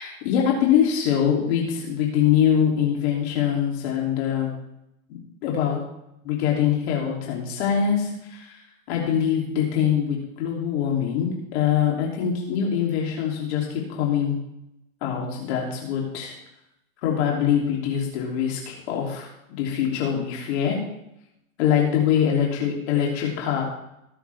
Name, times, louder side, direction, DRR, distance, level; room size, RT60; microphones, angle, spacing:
voice 1, 0.0-4.5 5.1-5.8 6.2-8.6 8.9-14.4 15.0-16.3 17.0-20.8 21.6-23.6, left 8 dB, 50° left, -2 dB, 3.2 m, -23 dB
18.0 x 7.1 x 3.6 m, 0.84 s
hypercardioid pair, 140°, 42 cm